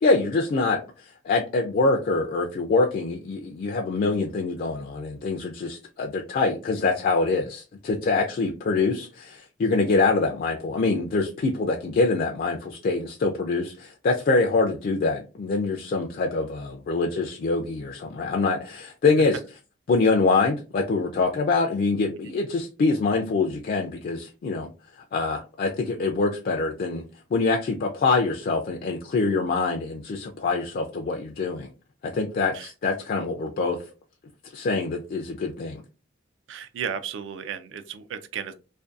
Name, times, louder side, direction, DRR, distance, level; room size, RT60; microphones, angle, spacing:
voice 1, 0.0-0.8 1.2-19.4 19.9-24.7 25.1-27.0 27.3-31.7 32.0-33.8 34.5-35.8, left 3 dB, 50° left, 0.3 m, -24 dB
voice 2, 36.5-38.5, right 7 dB, 70° right, 0.3 m, -34 dB
2.5 x 2.2 x 2.3 m
head